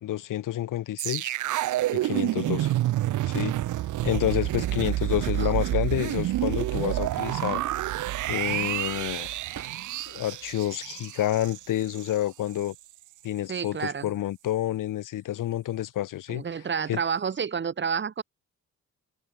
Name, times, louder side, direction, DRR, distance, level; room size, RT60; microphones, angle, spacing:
voice 1, 0.0-1.3 1.9-2.7 3.3-3.5 4.0-7.6 8.3-9.3 10.1-12.7 13.2-16.4 16.9-17.0, left 13 dB, 85° left, 1.4 m, -29 dB
sound 1, 1.0-12.2 12.5-12.7, right 15 dB, 75° right, 0.5 m, -28 dB
sound 2, 9.3-10.3 10.7-11.6 12.5-12.8 13.2-14.0, right 8 dB, 55° right, 4.6 m, -51 dB
voice 2, 13.5-14.1 16.3-18.2, right 6 dB, 35° right, 1.1 m, -30 dB
open air
cardioid pair, 105°, 31 cm